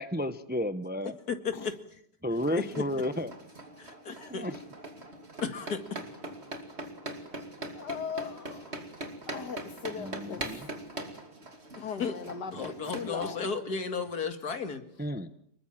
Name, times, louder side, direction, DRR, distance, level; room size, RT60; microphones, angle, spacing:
voice 1, 0.0-1.1 2.2-3.3 4.3-4.6 10.0-10.7 12.6-12.7 15.0-15.3, equal, 10° right, 0.7 m, -32 dB
voice 2, 1.3-1.7 3.8-4.4 5.4-5.8 11.8-12.1 12.5-14.8, left 5 dB, 65° left, 2.6 m, -34 dB
sound 1, 2.4-13.3, right 1 dB, 40° right, 2.9 m, -42 dB
voice 3, 7.7-8.7 9.3-10.6 11.8-13.6, left 6 dB, 85° left, 2.2 m, -39 dB
26.5 x 22.0 x 7.4 m
omnidirectional pair, 1.8 m